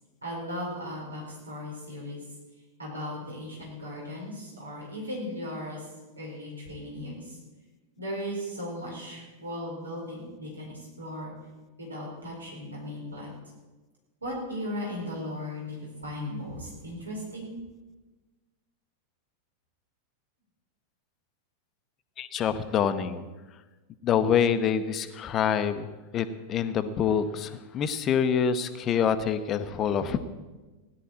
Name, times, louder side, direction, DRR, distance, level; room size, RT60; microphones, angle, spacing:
voice 1, 0.2-2.2 2.8-5.8 6.2-7.4 8.0-11.3 11.8-13.3 14.2-17.5, left 1 dB, 75° right, -2 dB, 4.3 m, -37 dB
voice 2, 22.2-23.2 24.0-25.9 26.1-30.2, left 7 dB, 30° left, 11 dB, 0.9 m, -26 dB
16.5 x 11.5 x 4.4 m, 1.2 s
figure-of-eight pair, 90°, 0 cm